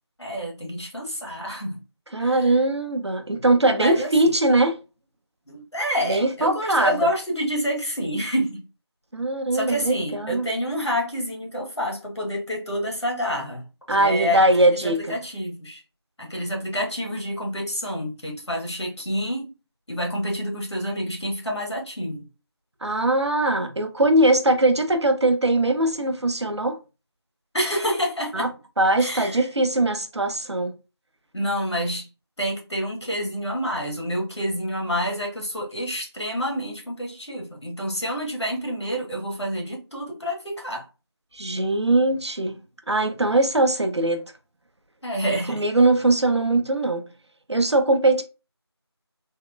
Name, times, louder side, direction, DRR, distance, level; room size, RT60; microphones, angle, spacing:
voice 1, 0.2-1.8 2.2-2.6 3.8-4.3 5.5-8.6 9.5-15.8 16.2-19.5 19.9-22.3 27.5-28.5 29.0-29.4 31.3-32.1 32.4-40.9 45.0-45.6, equal, 85° left, 1.3 m, -28 dB
voice 2, 2.1-4.8 6.1-6.9 9.1-10.5 13.9-15.1 22.8-26.8 28.3-28.5 28.8-30.8 41.3-42.6 42.9-44.2 45.5-47.1 47.5-48.2, right 2 dB, 85° right, 0.6 m, -21 dB
3.5 x 2.1 x 2.3 m
figure-of-eight pair, 175°, 14 cm